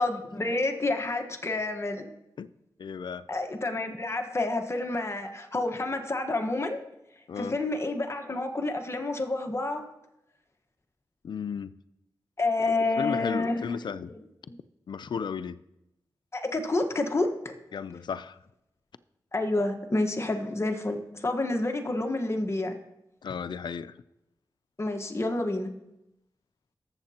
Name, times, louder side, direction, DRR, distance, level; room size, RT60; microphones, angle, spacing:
voice 1, 0.0-2.0 3.3-6.8 7.4-9.9 12.4-14.6 16.3-17.5 19.3-22.8 24.8-25.7, left 2 dB, 35° left, 4 dB, 1.3 m, -29 dB
voice 2, 2.8-3.3 7.3-7.6 11.2-11.7 12.6-14.1 14.9-15.6 17.7-18.4 23.2-24.0, left 6 dB, 75° left, 15 dB, 0.4 m, -34 dB
19.0 x 7.3 x 2.9 m, 0.87 s
cardioid pair, 45°, 8 cm